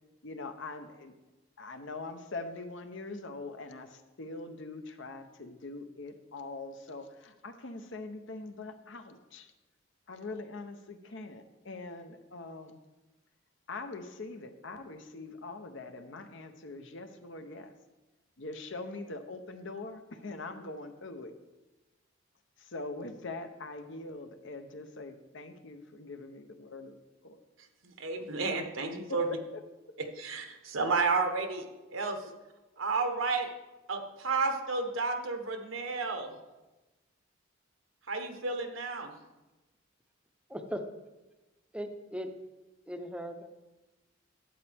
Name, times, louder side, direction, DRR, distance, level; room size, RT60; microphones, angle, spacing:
voice 1, 0.2-1.1 1.6-9.5 10.1-12.8 13.7-17.7 18.4-21.3 22.6-27.0 27.2-27.4 29.1-29.4 32.2-32.3, left 3 dB, 65° left, 7 dB, 0.8 m, -43 dB
voice 2, 27.8-29.3 30.0-31.6 31.9-32.2 32.8-33.5 33.9-36.3 38.1-39.1, right 4 dB, 80° right, 5 dB, 1.2 m, -31 dB
voice 3, 40.5-40.9 41.7-42.3 42.9-43.5, equal, 5° right, 6 dB, 0.6 m, -38 dB
11.5 x 8.3 x 3.5 m, 1.1 s
head